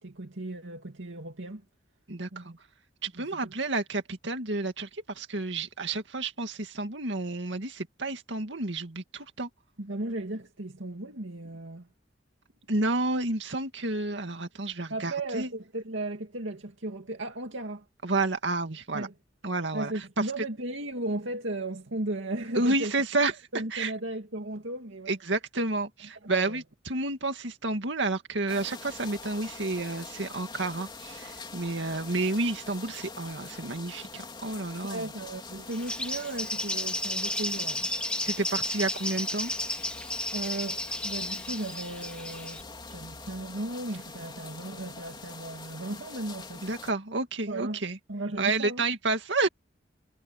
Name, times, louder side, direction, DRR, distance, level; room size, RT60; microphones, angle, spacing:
voice 1, 0.0-1.6 2.3-2.6 3.2-3.5 9.8-11.9 14.9-17.8 18.9-19.1 19.7-22.9 23.5-25.2 26.2-26.6 34.8-37.9 40.3-46.7 47.5-47.8 48.1-48.8, right 2 dB, 90° right, 2.2 m, -36 dB
voice 2, 2.1-2.5 3.0-9.5 12.7-15.5 18.0-19.1 19.4-20.3 22.6-23.9 25.1-35.1 38.2-39.5 46.6-48.0 48.4-49.5, right 2 dB, 75° right, 2.1 m, -30 dB
sound 1, 28.5-46.9, left 4 dB, 25° left, 3.8 m, -44 dB
Bird, 35.7-42.6, left 1 dB, 5° left, 1.7 m, -33 dB
head